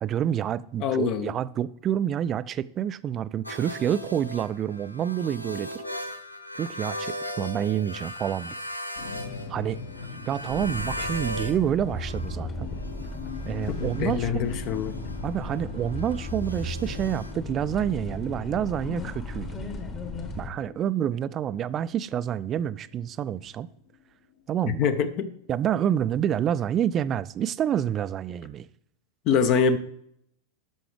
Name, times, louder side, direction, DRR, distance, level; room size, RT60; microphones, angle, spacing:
voice 1, 0.0-5.7 6.6-8.5 9.5-9.8 10.3-12.7 13.5-14.5 15.2-19.5 20.4-23.7 24.5-24.9 25.5-28.7, right 10 dB, 30° right, 0.3 m, -28 dB
voice 2, 0.8-1.3 13.7-15.0 24.7-25.3 29.3-29.8, left 6 dB, 40° left, 0.6 m, -24 dB
sound 1, 3.4-11.6 11.9-17.3, left 1 dB, 90° left, 0.7 m, -38 dB
sound 2, 8.9-25.3, left 5 dB, 60° left, 1.3 m, -43 dB
sound 3, 10.5-20.5, left 2 dB, 25° left, 1.2 m, -36 dB
10.5 x 6.9 x 3.3 m
figure-of-eight pair, 90°, 0 cm